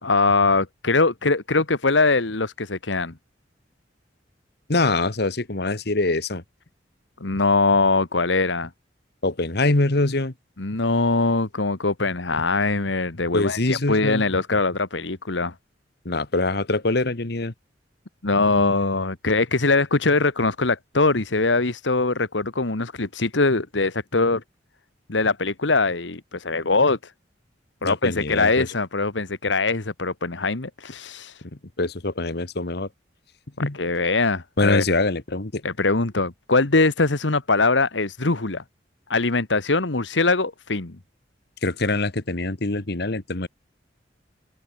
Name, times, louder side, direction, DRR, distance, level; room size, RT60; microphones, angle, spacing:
voice 1, 0.0-3.1 7.2-8.7 10.6-15.5 18.2-24.4 25.1-27.1 27.8-31.4 33.7-34.8 35.6-38.6 39.1-41.0, left 3 dB, 80° left, 1.7 m, -22 dB
voice 2, 4.7-6.4 9.2-10.3 13.3-14.2 16.0-17.5 27.8-28.7 31.8-32.9 33.6-33.8 34.6-35.6 41.6-43.5, left 2 dB, 60° left, 1.5 m, -24 dB
open air
head